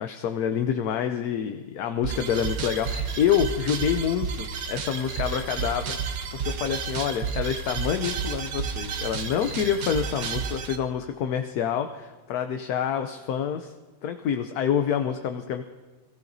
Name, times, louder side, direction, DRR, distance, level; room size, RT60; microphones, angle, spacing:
voice 1, 0.0-6.0 6.3-13.7 14.0-15.6, left 8 dB, 70° left, 7 dB, 1.0 m, -27 dB
sound 1, 2.0-10.8, right 6 dB, 85° right, 1.7 m, -31 dB
26.5 x 15.0 x 2.7 m, 1.3 s
omnidirectional pair, 1.9 m